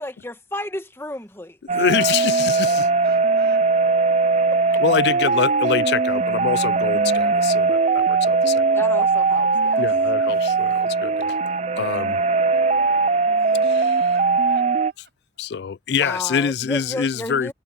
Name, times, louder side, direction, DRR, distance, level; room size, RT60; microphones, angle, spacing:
voice 1, 0.0-2.1 4.7-4.8 8.7-9.8 12.0-12.1 16.0-17.5, left 1 dB, 15° left, 1.2 m, -33 dB
voice 2, 1.7-2.7 4.8-8.8 9.8-11.3 11.8-12.2 13.6-14.1 15.4-17.5, left 7 dB, 60° left, 0.4 m, -25 dB
sound 1, 1.7-14.9, right 4 dB, 35° right, 0.4 m, -20 dB
voice 3, 2.8-4.3 13.3-15.6 15.9-16.0, right 4 dB, 60° right, 7.0 m, -51 dB
head